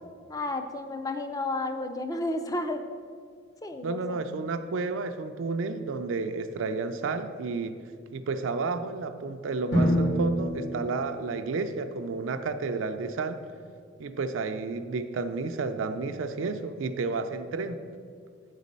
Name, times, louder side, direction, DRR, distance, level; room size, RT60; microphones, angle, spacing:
voice 1, 0.3-2.8 3.6-4.2, left 2 dB, 20° left, 7 dB, 0.4 m, -32 dB
voice 2, 3.8-7.8 8.1-13.4 14.0-17.8, right 4 dB, 70° right, 8 dB, 0.4 m, -31 dB
Drum, 9.7-11.6, equal, 65° left, 2.0 m, -27 dB
8.1 x 4.1 x 5.3 m, 2.1 s
head